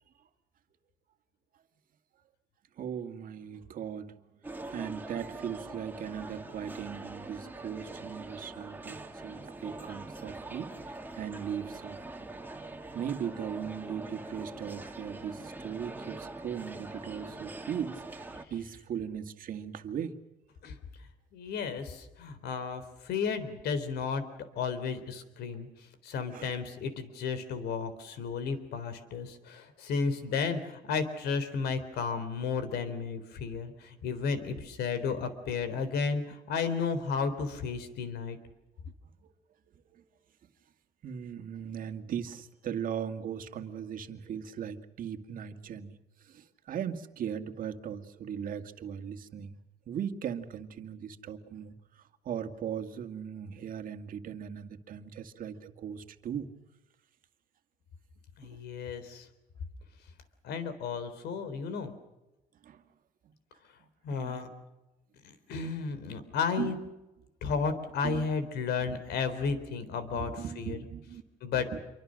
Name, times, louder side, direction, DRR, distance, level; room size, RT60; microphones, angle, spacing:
voice 1, 2.8-4.2 4.7-12.0 12.9-20.1 26.3-26.5 39.7-40.0 41.0-46.0 46.2-49.6 49.9-56.5 62.6-62.8 63.2-63.3 64.1-64.4 65.6-65.7 66.6-66.8 68.0-68.3 68.8-69.0 70.1-71.2 71.5-71.8, right 8 dB, 55° right, 7 dB, 2.1 m, -38 dB
sound 1, 4.4-18.4, right 2 dB, 10° right, 2.3 m, -43 dB
voice 2, 21.3-24.2 24.6-25.7 26.0-38.4 58.4-59.3 60.4-61.9 64.0-64.5 65.2-66.8 67.4-70.8 71.4-71.7, left 5 dB, 75° left, 11 dB, 3.8 m, -33 dB
27.5 x 24.0 x 6.5 m, 1.0 s
cardioid pair, 110°, 17 cm